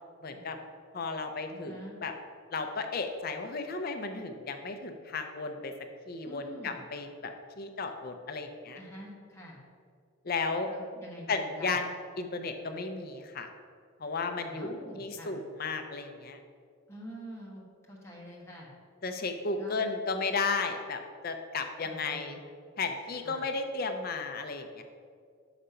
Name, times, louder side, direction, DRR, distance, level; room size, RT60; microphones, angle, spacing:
voice 1, 0.2-0.6 0.9-2.1 2.5-5.7 6.1-8.8 10.2-10.7 11.3-11.8 12.2-13.5 14.0-16.4 19.0-22.4 22.8-24.8, left 4 dB, 45° left, 6 dB, 0.5 m, -34 dB
voice 2, 1.5-2.0 6.3-6.8 8.7-9.6 10.7-11.7 14.4-15.4 16.9-18.7 19.6-19.9 21.8-22.4 23.2-23.4, equal, 15° left, -4 dB, 1.3 m, -46 dB
6.6 x 5.0 x 5.6 m, 2.2 s
head